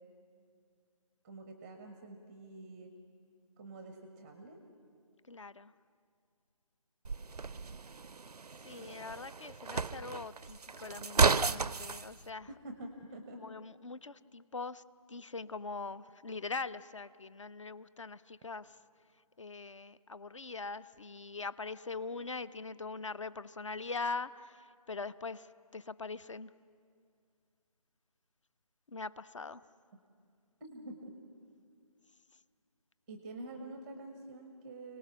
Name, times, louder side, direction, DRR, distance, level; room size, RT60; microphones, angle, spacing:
voice 1, 1.2-2.9 3.6-4.6 8.7-9.0 12.5-13.4 30.6-31.1 33.1-35.0, right 2 dB, 5° right, 5 dB, 0.6 m, -47 dB
voice 2, 5.3-5.7 8.6-12.5 13.4-18.8 19.4-26.5 28.9-29.6, left 4 dB, 55° left, 17 dB, 0.6 m, -42 dB
sound 1, 7.0-12.1, right 4 dB, 85° right, 0.5 m, -33 dB
29.5 x 18.0 x 6.1 m, 2.3 s
figure-of-eight pair, 155°, 19 cm